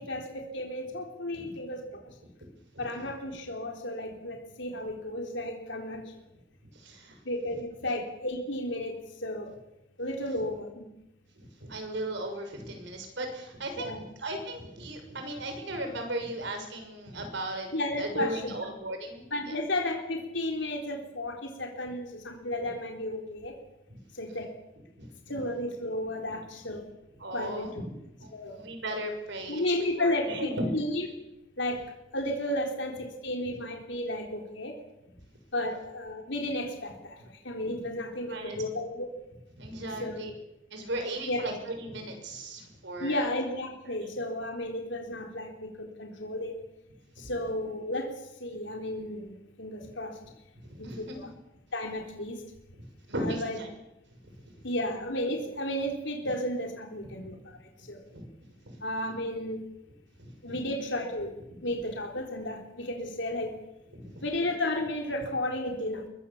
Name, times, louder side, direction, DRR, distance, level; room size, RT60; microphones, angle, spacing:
voice 1, 0.0-2.1 2.8-6.0 7.3-9.5 10.0-10.8 13.8-14.0 17.7-18.5 19.3-23.5 24.1-24.5 25.3-26.9 27.3-27.7 28.3-28.6 29.5-31.1 31.6-31.8 32.1-34.7 35.5-37.2 37.4-39.1 40.0-40.3 41.3-41.5 43.0-46.6 47.2-50.2 50.8-51.3 51.7-52.4 53.2-53.6 54.6-57.6 57.9-58.0 58.8-59.6 60.4-63.6 64.2-66.1, left 1 dB, 65° left, 2 dB, 3.8 m, -33 dB
voice 2, 2.7-3.1 6.6-7.2 7.8-7.9 11.3-17.7 18.0-19.6 23.9-24.0 24.3-24.4 25.0-25.4 27.2-30.7 32.9-33.0 38.3-38.6 39.6-40.3 40.7-43.3 47.3-47.4 50.7-51.3 52.7-53.7 54.4-54.7 56.2-56.3 57.1-57.4 57.8-57.9 58.1-58.3 58.6-58.8 60.2-60.6 61.5-61.6 63.9-64.2, right 1 dB, 65° right, 5 dB, 6.5 m, -37 dB
23.5 x 22.0 x 7.3 m, 0.91 s
head